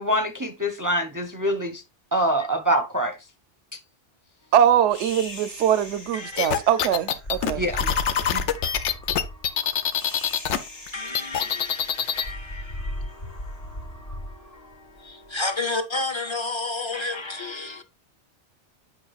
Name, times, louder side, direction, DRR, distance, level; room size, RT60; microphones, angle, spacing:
voice 1, 0.0-1.8 2.1-3.1 7.6-7.9 8.3-8.4, equal, 25° right, 0.5 m, -25 dB
voice 2, 4.5-7.6, right 9 dB, 85° right, 0.9 m, -22 dB
sound 1, 4.9-15.3, left 1 dB, 60° left, 2.4 m, -38 dB
sound 2, 6.4-10.6 10.9-12.3, left 8 dB, 85° left, 1.0 m, -25 dB
voice 3, 8.5-9.4 9.8-9.9 10.9-17.8, left 3 dB, 30° left, 0.7 m, -33 dB
8.6 x 5.7 x 2.3 m
omnidirectional pair, 1.2 m